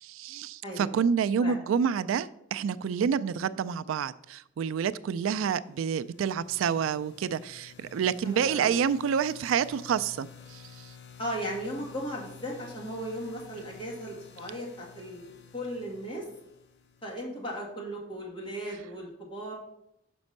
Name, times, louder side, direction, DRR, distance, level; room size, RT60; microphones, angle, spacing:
voice 1, 0.0-10.6, right 7 dB, 85° right, 0.3 m, -28 dB
voice 2, 0.6-0.9 1.4-1.5 8.2-8.8 11.2-16.3 17.0-19.5, equal, 25° left, 2.1 m, -37 dB
sound 1, 5.6-17.4, left 6 dB, 60° left, 0.9 m, -52 dB
6.1 x 5.2 x 6.5 m
head